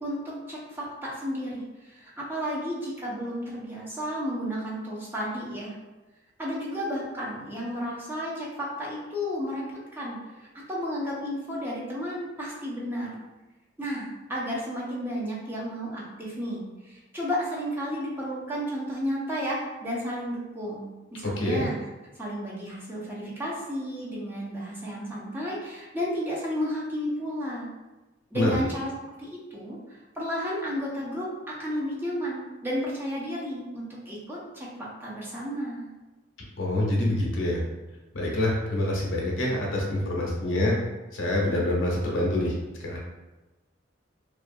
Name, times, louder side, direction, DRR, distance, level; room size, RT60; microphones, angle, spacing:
voice 1, 0.0-5.8 6.4-9.6 9.9-13.2 13.8-21.8 22.2-27.7 28.3-28.9 29.2-35.9, equal, 10° right, -6 dB, 0.6 m, -32 dB
voice 2, 21.2-21.6 28.3-28.6 36.6-37.6 38.1-40.8 41.1-42.5 42.8-43.0, left 1 dB, 85° left, -2 dB, 0.6 m, -26 dB
2.5 x 2.3 x 2.6 m, 1.1 s
head